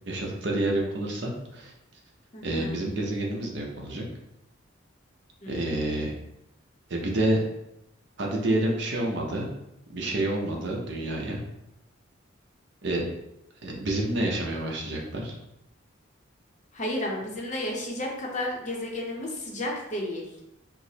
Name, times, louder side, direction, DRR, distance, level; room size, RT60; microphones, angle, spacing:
voice 1, 0.1-1.7 2.4-4.0 5.5-6.2 6.9-7.5 8.2-9.5 9.9-11.4 12.8-13.0 13.6-15.3, right 1 dB, 60° right, -1 dB, 0.7 m, -28 dB
voice 2, 2.3-2.8 5.4-5.9 16.7-20.3, left 1 dB, 35° left, -1 dB, 0.6 m, -32 dB
4.6 x 2.0 x 2.7 m, 0.86 s
head